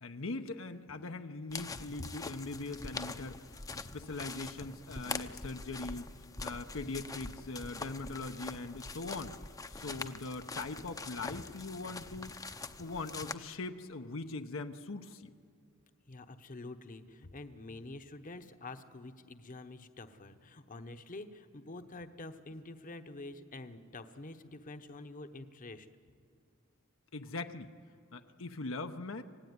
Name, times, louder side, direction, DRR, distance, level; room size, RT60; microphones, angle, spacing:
voice 1, 0.0-3.4 3.8-12.5 12.8-15.3 27.1-27.7 28.1-29.2, left 3 dB, 75° left, 6 dB, 0.9 m, -41 dB
sound 1, 1.5-13.3, left 3 dB, 20° left, 0.7 m, -44 dB
voice 2, 16.1-25.9, left 2 dB, 40° left, 8 dB, 1.0 m, -47 dB
26.5 x 18.0 x 9.6 m, 2.2 s
head